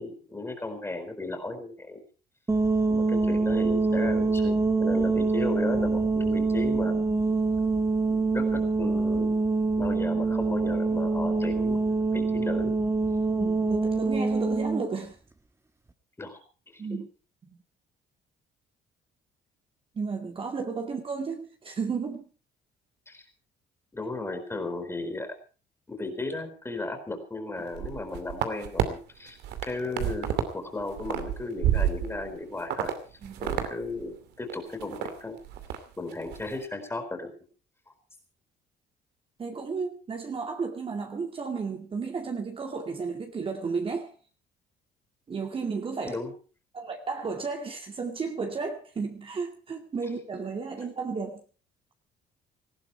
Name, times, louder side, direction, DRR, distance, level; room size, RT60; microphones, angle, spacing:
voice 1, 0.0-2.0 2.9-7.0 8.1-9.3 9.8-11.8 12.1-12.7 16.2-16.4 16.7-17.0 23.1-23.2 23.9-25.3 25.9-29.4 29.6-32.9 33.4-35.4 36.0-37.3 46.1-46.3, left 2 dB, 15° left, 7 dB, 4.3 m, -35 dB
sound 1, 2.5-14.8, right 3 dB, 15° right, 1.7 m, -25 dB
voice 2, 13.3-15.2 16.8-17.1 17.5-17.6 19.9-22.3 33.2-33.5 39.4-44.1 45.3-46.2 46.7-51.4, right 5 dB, 30° right, 3 dB, 2.3 m, -33 dB
sound 2, 27.7-28.9 29.3-30.5 30.8-32.3 32.7-32.9 33.2-33.7 34.0-34.1 34.5-35.1 35.4-35.8 36.1-36.4, right 11 dB, 80° right, 2.5 m, -29 dB
19.0 x 15.0 x 4.6 m, 0.37 s
cardioid pair, 110°, 17 cm